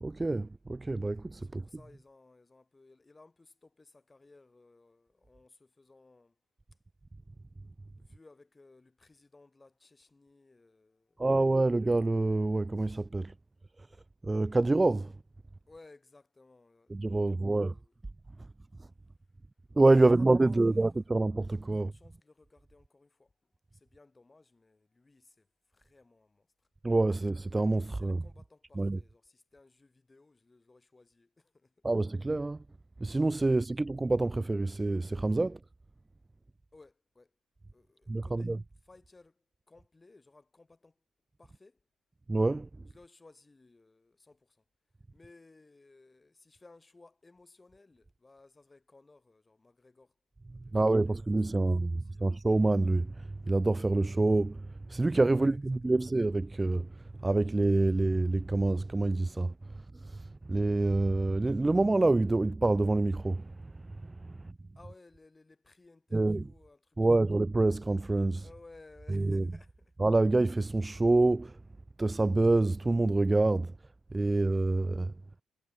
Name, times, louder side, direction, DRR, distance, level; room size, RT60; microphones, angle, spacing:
voice 1, 0.0-1.6 11.2-13.3 14.2-15.1 16.9-17.7 19.8-21.9 26.8-28.2 28.8-29.0 31.8-32.6 33.0-35.6 38.1-38.6 42.3-42.7 50.7-56.9 57.2-59.5 60.0-63.7 64.0-64.5 66.1-66.4 67.0-68.4 69.1-69.5 70.0-71.6 72.0-73.7 74.1-75.1, right 2 dB, 15° right, 0.5 m, -27 dB
voice 2, 1.4-6.4 8.0-11.2 15.7-18.0 20.0-20.8 21.7-23.3 23.7-26.5 27.9-31.8 36.7-37.3 37.7-41.0 41.4-41.8 42.9-44.6 45.1-50.1 50.5-51.2 51.6-52.3 55.3-56.0 64.7-67.3 68.4-69.9, left 3 dB, 20° left, 4.0 m, -59 dB
cardioid pair, 90°, 0 cm